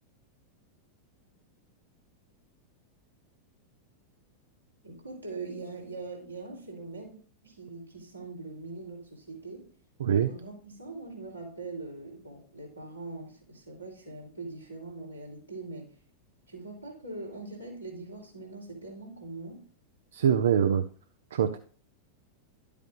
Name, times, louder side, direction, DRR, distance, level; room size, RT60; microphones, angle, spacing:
voice 1, 4.8-9.7 10.3-16.0 16.5-19.7, right 3 dB, 85° right, 3.5 m, -42 dB
voice 2, 20.1-20.8 21.3-21.6, right 8 dB, 65° right, 0.6 m, -24 dB
11.5 x 8.3 x 2.6 m
figure-of-eight pair, 90°, 0 cm